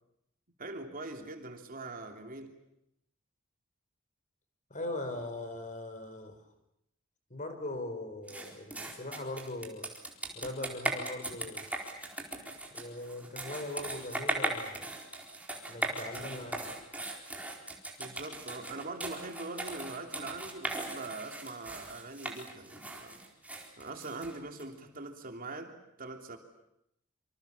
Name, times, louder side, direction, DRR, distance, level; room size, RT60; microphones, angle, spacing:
voice 1, 0.6-2.6 18.0-23.2 23.8-26.4, right 2 dB, 45° right, 4 dB, 3.1 m, -42 dB
voice 2, 4.7-6.4 7.3-9.9 10.4-11.7 12.7-14.9 15.7-16.7, left 2 dB, 40° left, 7 dB, 5.1 m, -40 dB
sound 1, 8.3-24.6, right 2 dB, 5° right, 4.3 m, -38 dB
27.0 x 26.0 x 7.2 m, 0.79 s
head